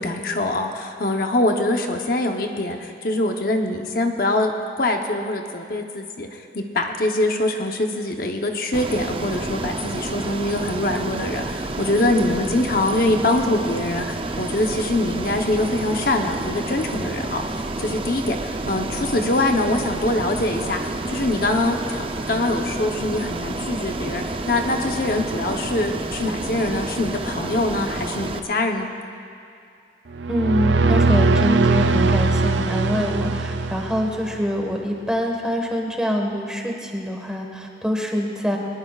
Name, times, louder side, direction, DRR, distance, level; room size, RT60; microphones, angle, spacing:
voice 1, 0.0-4.5 4.8-28.9, left 2 dB, 55° left, 3 dB, 0.9 m, -24 dB
Ocean, 8.7-28.4, right 2 dB, 30° right, 0.6 m, -29 dB
sound 1, 30.1-34.5, right 3 dB, 85° right, 0.5 m, -20 dB
voice 2, 30.3-38.6, equal, 5° right, 1 dB, 1.4 m, -25 dB
22.0 x 20.0 x 2.4 m, 2.4 s
head